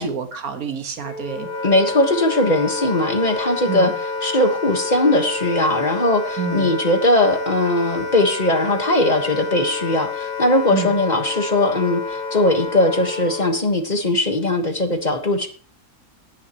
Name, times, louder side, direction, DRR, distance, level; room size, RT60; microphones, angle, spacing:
voice 1, 0.0-1.5 3.7-4.0 6.4-6.7 10.7-10.9, right 6 dB, 90° right, 7 dB, 1.9 m, -28 dB
Wind instrument woodwind instrument, 1.0-13.7, left 3 dB, 90° left, 2.0 m, -29 dB
voice 2, 1.6-15.5, left 1 dB, 30° left, 6 dB, 1.5 m, -19 dB
17.0 x 9.6 x 3.0 m, 0.41 s
omnidirectional pair, 1.5 m